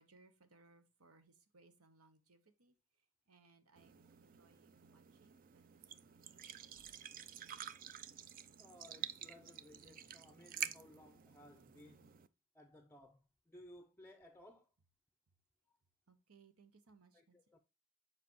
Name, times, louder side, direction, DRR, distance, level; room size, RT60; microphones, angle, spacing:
voice 1, 0.0-6.9 16.1-17.5, right 3 dB, 85° right, 1.1 m, -68 dB
sound 1, 3.8-12.3, right 9 dB, 40° right, 0.4 m, -49 dB
voice 2, 8.6-12.2 12.5-14.7 15.7-15.8 17.1-17.6, left 1 dB, 10° left, 0.5 m, -60 dB
7.4 x 5.0 x 3.0 m
head